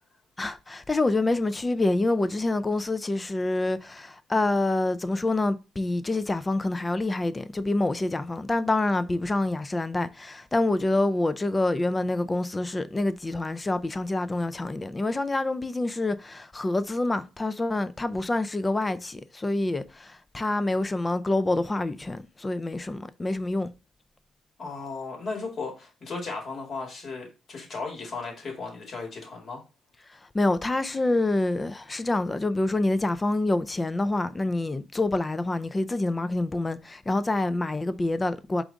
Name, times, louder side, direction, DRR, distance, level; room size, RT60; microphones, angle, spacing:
voice 1, 0.4-23.7 30.1-38.6, left 2 dB, 20° left, 0.4 m, -27 dB
voice 2, 24.6-29.6, left 4 dB, 50° left, 2.0 m, -36 dB
4.7 x 2.5 x 3.9 m
cardioid pair, 90°, 0 cm